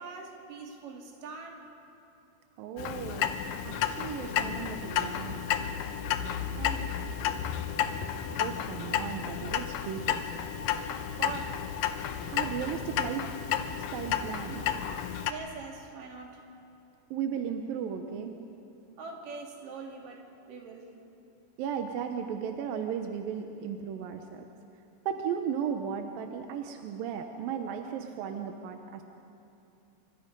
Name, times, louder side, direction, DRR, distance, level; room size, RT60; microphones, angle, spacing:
voice 1, 0.0-1.7 6.5-7.4 11.2-11.7 15.3-16.5 19.0-20.9, right 4 dB, 55° right, 1 dB, 3.7 m, -43 dB
voice 2, 2.6-3.3 3.6-5.5 8.4-10.3 12.3-13.3 13.6-14.7 17.1-18.3 21.6-24.4 25.1-29.0, right 8 dB, 75° right, 5 dB, 2.2 m, -35 dB
Clock, 2.8-15.3, left 9 dB, 85° left, 1.9 m, -32 dB
27.0 x 25.0 x 5.3 m, 2.7 s
omnidirectional pair, 5.1 m